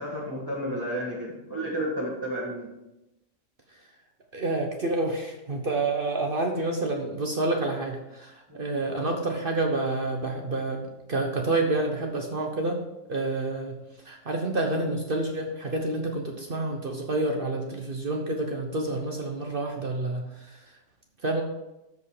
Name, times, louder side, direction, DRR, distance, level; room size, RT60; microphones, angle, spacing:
voice 1, 0.0-2.7 8.6-8.8, equal, 15° right, -7 dB, 1.8 m, -32 dB
voice 2, 4.3-12.8 13.1-13.8 14.1-20.5 21.2-21.4, right 2 dB, 45° right, 2 dB, 1.2 m, -28 dB
13.0 x 5.5 x 4.9 m, 0.95 s
omnidirectional pair, 1.3 m